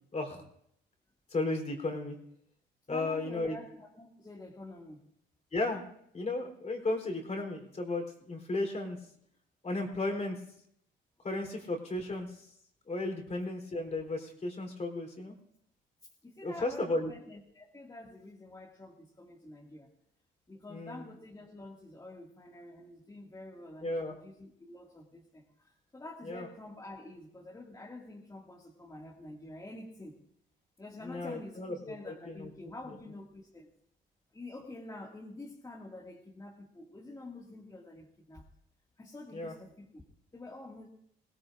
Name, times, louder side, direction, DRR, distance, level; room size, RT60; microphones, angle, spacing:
voice 1, 1.3-2.2 2.9-3.6 5.5-5.9 6.1-9.0 9.6-10.4 11.2-12.3 12.9-15.3 16.4-17.1 20.7-21.0 23.8-24.1 26.3-26.5 31.0-32.5 39.3-39.5, left 2 dB, 35° left, 3 dB, 3.6 m, -34 dB
voice 2, 2.9-5.0 16.2-19.9 20.5-30.2 30.8-33.7 34.3-38.4 39.0-40.0 40.3-40.9, left 2 dB, 20° left, -3 dB, 2.1 m, -48 dB
22.0 x 17.5 x 2.6 m, 0.72 s
cardioid pair, 90°, 20 cm